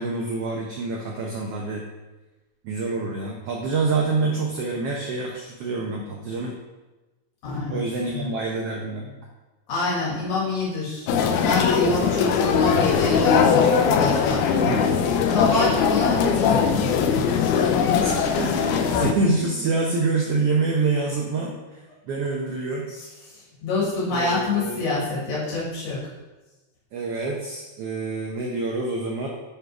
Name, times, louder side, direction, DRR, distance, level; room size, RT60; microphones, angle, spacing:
voice 1, 0.0-1.9 2.6-6.5 7.7-9.2 14.5-14.9 18.0-22.9 24.1-24.8 26.9-29.3, right 3 dB, 65° right, -1 dB, 1.6 m, -26 dB
voice 2, 7.4-7.8 8.1-8.3 9.7-11.1 11.4-14.7 15.3-16.9 22.9-23.0 23.6-26.0, left 3 dB, 65° left, -6 dB, 3.5 m, -26 dB
sound 1, 11.1-19.1, left 6 dB, 90° left, 2.1 m, -20 dB
10.0 x 4.1 x 4.7 m, 1.1 s
omnidirectional pair, 3.4 m